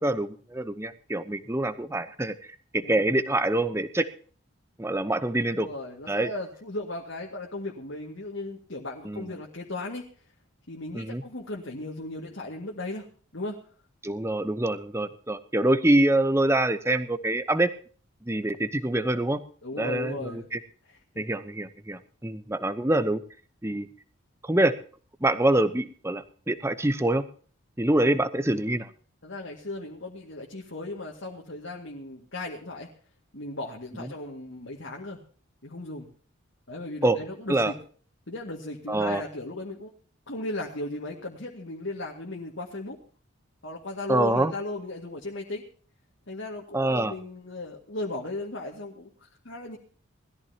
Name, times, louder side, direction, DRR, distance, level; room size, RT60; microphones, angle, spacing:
voice 1, 0.0-4.1 4.8-5.7 6.1-6.3 9.0-9.3 10.9-11.2 14.0-17.7 18.2-19.4 19.8-20.6 21.2-23.2 23.6-23.9 24.4-24.8 25.2-27.3 27.8-28.9 34.0-34.1 37.0-37.2 37.5-37.7 38.9-39.2 44.1-44.5 46.7-47.1, right 1 dB, 10° right, 12 dB, 0.8 m, -25 dB
voice 2, 5.6-10.0 10.7-13.1 13.3-13.6 19.6-20.5 20.8-21.3 23.7-23.9 29.2-32.9 33.3-35.2 35.6-36.1 36.7-37.7 38.3-39.9 40.3-43.0 43.6-45.6 46.3-49.8, left 2 dB, 60° left, -1 dB, 2.1 m, -36 dB
20.5 x 14.0 x 2.9 m, 0.43 s
head